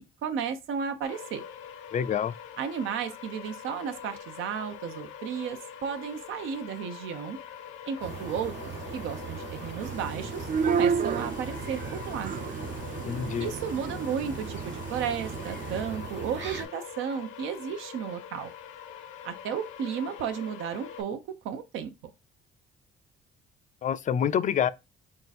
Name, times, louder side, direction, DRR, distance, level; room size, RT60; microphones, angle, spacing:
voice 1, 0.0-1.4 2.6-7.4 7.8-12.3 13.4-18.5 19.2-21.2 21.4-21.9, right 7 dB, 90° right, 0.7 m, -34 dB
sound 1, 1.0-21.0, left 8 dB, 85° left, 0.6 m, -44 dB
voice 2, 1.9-2.3 13.0-13.5 23.8-24.7, left 8 dB, 40° left, 0.4 m, -27 dB
sound 2, 8.0-16.6, right 4 dB, 65° right, 1.1 m, -39 dB
sound 3, 9.8-15.8, right 6 dB, 45° right, 0.4 m, -32 dB
3.8 x 2.4 x 4.0 m
cardioid pair, 90°, 20 cm